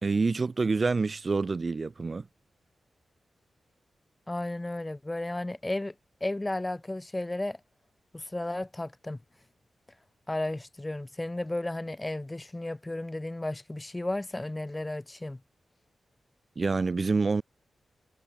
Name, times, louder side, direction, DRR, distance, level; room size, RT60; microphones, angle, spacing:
voice 1, 0.0-2.3 16.6-17.4, right 4 dB, 40° right, 1.3 m, -27 dB
voice 2, 4.3-5.9 6.2-7.6 8.1-9.2 10.3-15.4, left 1 dB, 15° left, 2.4 m, -33 dB
wide cardioid pair, 100°, 0 cm